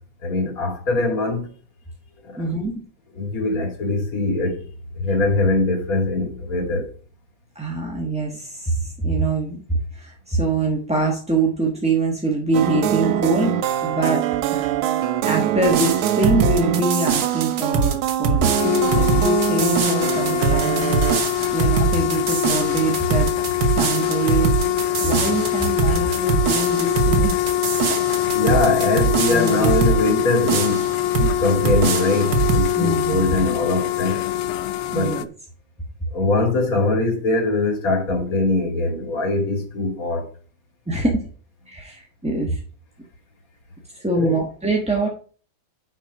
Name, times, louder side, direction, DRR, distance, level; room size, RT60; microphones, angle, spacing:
voice 1, 0.2-1.5 3.2-4.6 5.0-6.8 28.3-30.8 31.2-34.2 34.9-35.1 36.1-40.2 44.1-44.3, left 2 dB, 40° left, 3.0 m, -22 dB
voice 2, 2.4-2.7 7.5-14.9 15.2-23.4 23.7-24.5 25.0-27.3 27.9-28.0 29.3-29.7 32.8-33.6 34.9-35.3 40.9-41.2 41.7-42.6 43.9-45.1, right 2 dB, 5° right, 0.9 m, -24 dB
sound 1, 12.5-21.2, right 10 dB, 80° right, 1.6 m, -23 dB
sound 2, 15.7-30.0 30.5-31.3 31.6-32.7, right 5 dB, 60° right, 1.6 m, -23 dB
sound 3, 18.4-35.3, left 12 dB, 85° left, 1.5 m, -24 dB
10.0 x 4.4 x 4.9 m
omnidirectional pair, 2.3 m